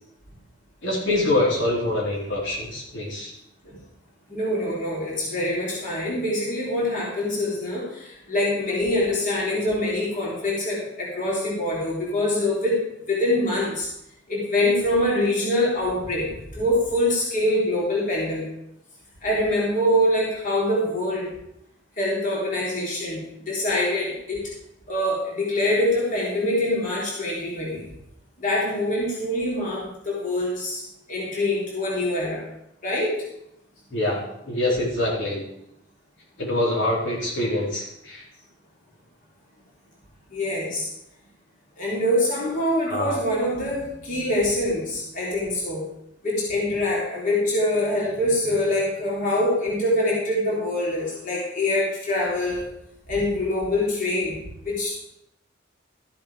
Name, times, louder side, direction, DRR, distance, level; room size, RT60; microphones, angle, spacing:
voice 1, 0.8-3.3 33.9-35.4 36.4-38.2 42.9-43.2, left 1 dB, 70° left, -5 dB, 4.0 m, -25 dB
voice 2, 4.3-13.9 14.3-18.5 19.2-21.4 22.0-24.4 24.9-27.9 28.4-30.8 31.1-32.5 32.8-33.3 40.3-40.9 41.8-45.8 46.2-52.7 53.1-55.1, left 1 dB, 40° left, -5 dB, 3.7 m, -24 dB
14.0 x 7.8 x 5.0 m, 0.79 s
head